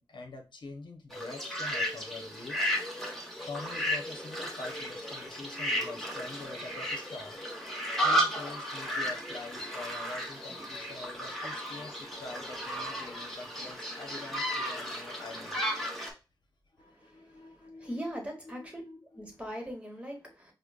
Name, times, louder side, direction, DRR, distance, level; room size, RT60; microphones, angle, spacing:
voice 1, 0.0-2.7 3.0-15.6 16.7-18.1 18.4-19.4, left 3 dB, 70° left, 3 dB, 0.9 m, -46 dB
sound 1, 1.1-16.1, equal, ahead, 1.1 m, -34 dB
voice 2, 17.8-18.8 19.2-20.5, equal, 15° right, 1 dB, 1.3 m, -39 dB
4.9 x 2.2 x 2.4 m, 0.30 s
wide cardioid pair, 75°, 8 cm